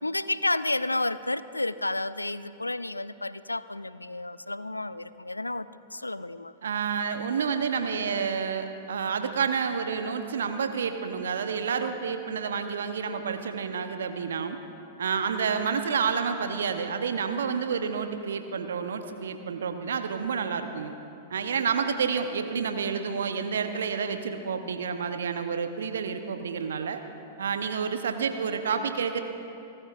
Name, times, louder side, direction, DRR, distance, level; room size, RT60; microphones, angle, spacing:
voice 1, 0.0-6.5, left 2 dB, 90° left, 16 dB, 0.3 m, -31 dB
voice 2, 6.6-14.6 15.0-20.9 21.3-27.0 27.4-29.2, right 6 dB, 65° right, 8 dB, 0.8 m, -29 dB
28.0 x 13.5 x 2.5 m, 2.7 s
figure-of-eight pair, 100°, 0 cm